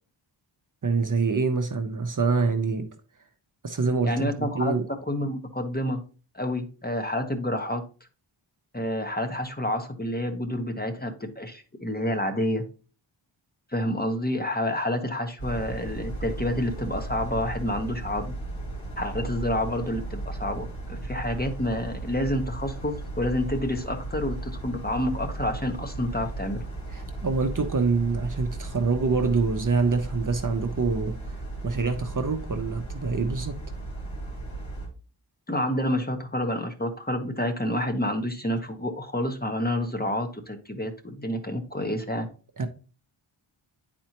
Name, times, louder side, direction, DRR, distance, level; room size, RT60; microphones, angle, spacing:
voice 1, 0.8-2.9 3.6-4.8 26.9-31.1 31.6-33.6 42.6-42.7, right 4 dB, 40° right, 0.8 m, -25 dB
voice 2, 4.0-4.7 5.1-6.0 6.3-7.8 8.7-12.6 13.7-18.3 19.0-26.6 35.5-42.3, left 1 dB, 20° left, 1.0 m, -29 dB
sound 1, 15.4-34.9, right 2 dB, 85° left, 2.2 m, -35 dB
9.1 x 4.3 x 2.9 m
wide cardioid pair, 70°, 47 cm